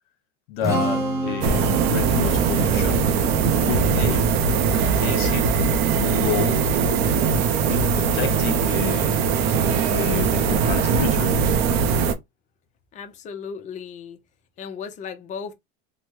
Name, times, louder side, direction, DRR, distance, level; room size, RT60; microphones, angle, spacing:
voice 1, 0.5-3.1 3.6-4.3 4.7-5.5 6.0-6.7 7.7-9.2 9.9-11.4, left 10 dB, 70° left, 0.8 m, -30 dB
Strum, 0.6-6.9, right 2 dB, 10° right, 0.7 m, -31 dB
sound 1, 1.4-12.1, right 6 dB, 80° right, 0.6 m, -21 dB
voice 2, 12.9-14.2 14.6-15.5, left 6 dB, 25° left, 0.5 m, -35 dB
3.3 x 2.1 x 3.0 m
supercardioid pair, 130°, 30 cm